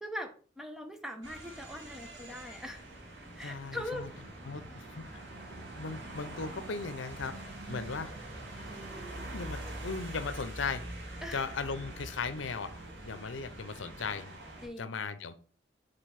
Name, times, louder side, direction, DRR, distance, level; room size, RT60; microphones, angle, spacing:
voice 1, 0.0-2.8 3.3-4.1 8.9-9.3 11.2-11.4 14.6-14.9, equal, ahead, 5 dB, 0.8 m, -41 dB
sound 1, 1.2-14.7, right 1 dB, 75° right, 2.1 m, -44 dB
voice 2, 3.4-4.1 4.4-5.2 5.8-8.1 9.3-10.8 11.3-12.7 13.0-14.4 14.8-15.3, left 4 dB, 80° left, 11 dB, 0.7 m, -37 dB
5.2 x 4.0 x 5.8 m, 0.42 s
head